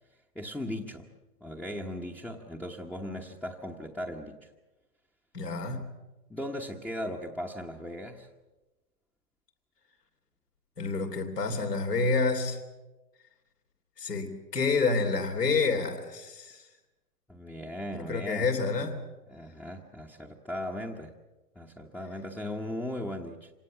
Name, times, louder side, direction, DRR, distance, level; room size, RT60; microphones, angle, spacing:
voice 1, 0.3-1.1 1.4-4.5 6.3-8.3 17.3-18.5 19.3-21.1 21.5-23.5, left 1 dB, 5° left, -2 dB, 1.1 m, -37 dB
voice 2, 5.3-5.9 10.8-12.6 14.0-16.7 18.0-19.0, left 4 dB, 85° left, 3 dB, 3.3 m, -28 dB
26.0 x 18.5 x 7.4 m, 1.1 s
figure-of-eight pair, 115°, 47 cm